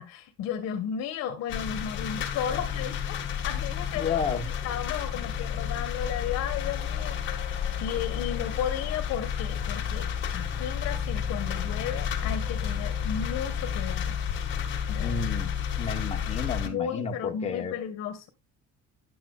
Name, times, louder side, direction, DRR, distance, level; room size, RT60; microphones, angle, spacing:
voice 1, 0.0-14.2 14.9-15.2 16.6-18.3, left 9 dB, 60° left, 1.6 m, -34 dB
sound 1, 1.5-16.7, left 8 dB, 40° left, 1.8 m, -31 dB
voice 2, 4.0-4.4 15.0-15.5 15.8-17.7, left 5 dB, 20° left, 1.0 m, -31 dB
10.5 x 8.7 x 2.4 m
cardioid pair, 180°, 31 cm